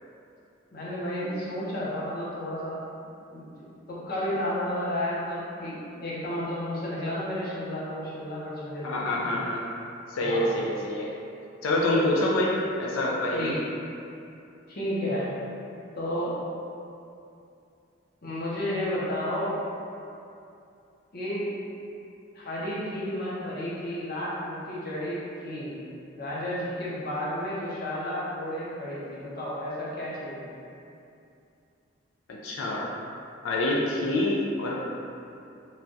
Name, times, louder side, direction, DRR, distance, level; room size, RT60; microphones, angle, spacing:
voice 1, 0.7-2.8 3.3-3.5 3.9-9.3 10.2-10.5 13.3-13.6 14.7-15.3 16.0-16.4 18.2-19.6 21.1-21.5 22.3-25.7 26.2-30.5, left 1 dB, 45° left, -8 dB, 0.7 m, -32 dB
voice 2, 8.8-9.6 10.1-11.1 11.6-13.5 32.3-32.9 33.4-34.8, left 1 dB, 85° left, -3 dB, 0.4 m, -26 dB
3.2 x 2.3 x 2.6 m, 2.6 s
head